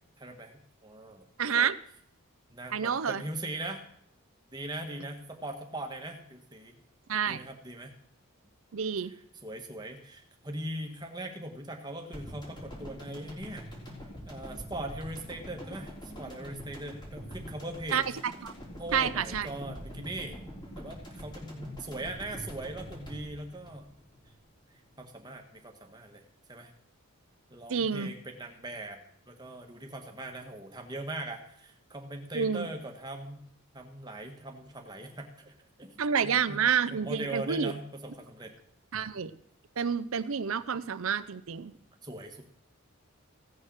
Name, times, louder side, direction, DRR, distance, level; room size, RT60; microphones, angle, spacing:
voice 1, 0.2-1.3 2.5-3.8 4.5-6.8 7.3-7.9 9.0-13.7 14.3-15.9 16.2-18.0 18.8-20.4 20.8-24.0 25.0-26.2 26.5-26.7 27.5-29.0 29.3-33.4 33.7-35.5 35.8-36.6 36.9-38.5 42.0-42.4, right 1 dB, 20° right, 3 dB, 1.4 m, -40 dB
voice 2, 1.4-1.8 2.7-3.2 7.1-7.4 8.7-9.1 17.9-18.0 18.4-18.5 18.9-19.5 27.7-28.1 32.3-32.7 36.0-37.7 38.9-39.3 39.8-41.7, right 7 dB, 70° right, 14 dB, 0.6 m, -29 dB
sound 1, 12.1-24.5 24.8-24.9, equal, 20° left, 3.3 m, -44 dB
16.0 x 6.6 x 6.4 m, 0.71 s
head